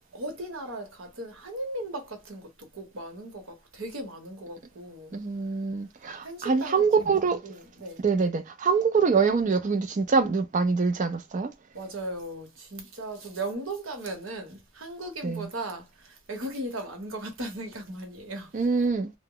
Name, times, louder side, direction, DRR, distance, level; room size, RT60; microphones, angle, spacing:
voice 1, 0.0-5.2 6.2-8.0 11.7-18.5, right 1 dB, 70° right, 0.9 m, -37 dB
voice 2, 5.1-7.4 8.0-11.5 15.2-15.5 18.5-19.1, right 5 dB, 35° right, 0.4 m, -24 dB
2.0 x 2.0 x 3.7 m
head